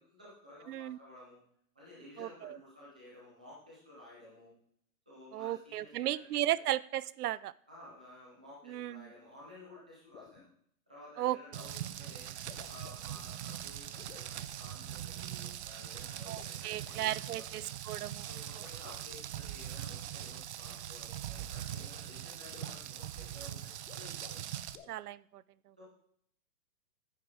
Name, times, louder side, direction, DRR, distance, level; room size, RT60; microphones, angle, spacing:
voice 1, 0.0-1.4 1.7-4.5 5.1-6.4 7.7-10.5 10.9-12.3 12.6-17.6 18.2-24.4 25.8-25.9, left 1 dB, 5° right, -7 dB, 0.4 m, -54 dB
voice 2, 0.7-1.0 2.2-2.6 5.3-7.5 8.7-9.1 11.2-11.4 16.3-18.3 24.9-25.4, right 13 dB, 90° right, 20 dB, 0.6 m, -35 dB
sound 1, 9.7-9.8 10.1-10.5 11.5-11.7 12.3-13.3 14.0-14.3 16.3-17.0 18.6-18.8 20.1-20.2 21.4-21.5 21.9-22.0 22.2-22.3 22.5-22.9 23.7-24.5 24.7-25.0, left 8 dB, 60° left, 1.3 m, -56 dB
Rain, 11.5-24.8, right 11 dB, 50° right, 0.6 m, -42 dB
9.6 x 8.4 x 4.7 m, 0.66 s
hypercardioid pair, 165°, 44 cm